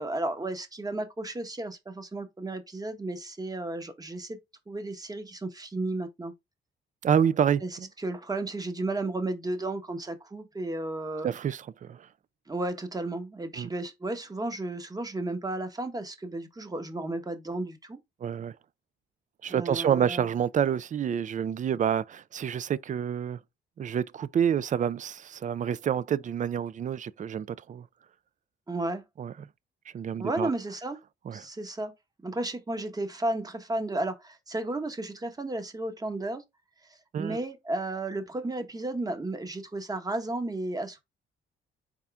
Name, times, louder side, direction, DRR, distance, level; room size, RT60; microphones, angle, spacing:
voice 1, 0.0-4.4 4.7-6.3 7.6-7.7 8.0-11.3 12.5-18.0 19.5-20.3 28.7-29.0 30.2-31.0 31.3-31.9 32.2-36.4 36.8-41.0, right 2 dB, 20° right, 1.1 m, -33 dB
voice 2, 7.0-7.9 11.2-12.1 13.6-13.7 18.2-18.5 19.4-23.4 23.8-27.9 29.2-29.3 29.9-30.5 31.3-31.5 37.1-37.4, right 8 dB, 40° right, 0.4 m, -28 dB
4.3 x 3.7 x 3.4 m
cardioid pair, 90°, 20 cm